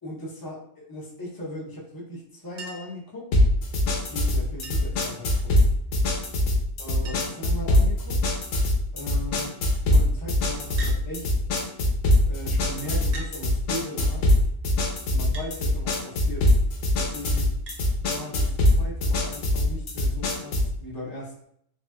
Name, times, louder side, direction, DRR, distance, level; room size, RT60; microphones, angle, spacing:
voice 1, 0.0-3.3 3.8-5.7 6.8-8.2 8.9-9.6 9.8-11.3 12.3-14.3 15.1-16.5 17.0-17.6 18.0-21.4, equal, 30° left, -5 dB, 0.4 m, -38 dB
Chink clink, 2.6-3.0 4.6-5.0 6.4-6.5 6.7-6.8 7.1-7.5 8.3-8.6 10.8-11.0 12.1-12.2 13.1-13.4 15.3-15.5 17.7-17.8 19.3-19.4, right 2 dB, 60° right, 0.7 m, -41 dB
sound 1, 3.3-20.8, left 1 dB, 70° left, 0.9 m, -23 dB
3.1 x 2.5 x 2.2 m, 0.70 s
omnidirectional pair, 1.5 m